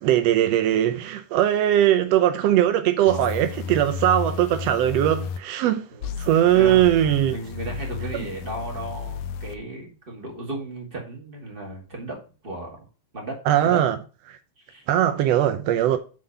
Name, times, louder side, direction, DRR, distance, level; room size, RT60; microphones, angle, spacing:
voice 1, 0.0-5.9 6.2-7.3 8.1-8.2 13.5-14.0 14.3-14.4 14.9-16.0, right 11 dB, 90° right, 1.4 m, -20 dB
sound 1, 3.1-5.4 6.0-9.6, left 6 dB, 85° left, 2.3 m, -33 dB
voice 2, 6.5-6.8 7.3-12.8 13.1-13.8 14.6-14.8, right 2 dB, 20° right, 1.8 m, -35 dB
7.5 x 3.8 x 6.7 m
omnidirectional pair, 3.8 m